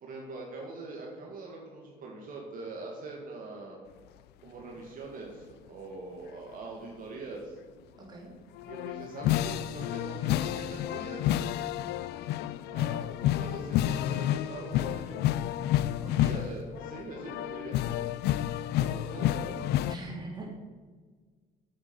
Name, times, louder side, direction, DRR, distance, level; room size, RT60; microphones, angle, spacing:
voice 1, 0.0-3.8 4.4-7.6 8.7-11.3 12.7-15.2 16.0-18.2 18.8-19.7, right 3 dB, 55° right, -1 dB, 1.9 m, -43 dB
voice 2, 8.0-8.3 16.0-16.4 19.9-20.5, right 2 dB, 25° right, -2 dB, 3.0 m, -42 dB
sound 1, 8.6-19.9, left 12 dB, 80° left, 0.4 m, -30 dB
8.4 x 8.1 x 5.4 m, 1.5 s
cardioid pair, 110°, 17 cm